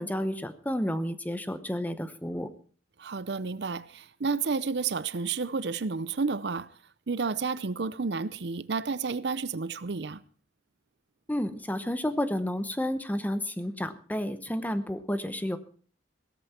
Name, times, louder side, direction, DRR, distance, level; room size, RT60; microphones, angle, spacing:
voice 1, 0.0-2.5 11.3-15.6, left 1 dB, 10° left, 0.9 m, -31 dB
voice 2, 3.0-6.7 7.1-10.2, right 4 dB, 65° right, 0.6 m, -31 dB
17.0 x 14.0 x 4.3 m
head